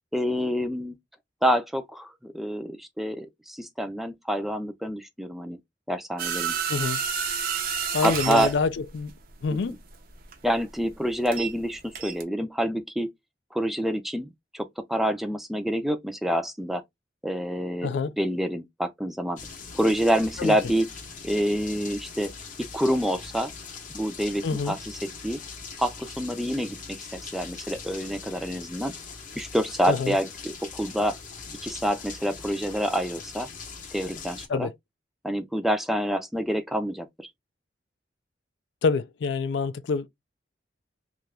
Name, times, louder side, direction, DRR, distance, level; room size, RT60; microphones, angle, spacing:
voice 1, 0.1-1.0 1.4-5.6 5.9-6.6 8.0-8.5 9.5-9.8 10.4-13.1 13.5-16.8 17.2-19.4 19.7-20.9 21.2-22.3 22.6-23.5 23.9-25.4 25.8-28.9 29.4-31.2 31.6-33.5 33.9-34.7 35.2-37.3, equal, ahead, 0.4 m, -27 dB
sound 1, 6.2-11.7 11.9-12.2, right 7 dB, 55° right, 0.6 m, -30 dB
voice 2, 6.7-7.0 7.9-9.1 9.4-9.8 17.8-18.1 20.4-20.6 24.4-24.8 29.9-30.2 34.5-34.7 38.8-40.1, left 4 dB, 70° left, 0.4 m, -26 dB
sound 2, 19.4-34.5, left 5 dB, 45° left, 0.7 m, -41 dB
2.7 x 2.4 x 3.3 m
head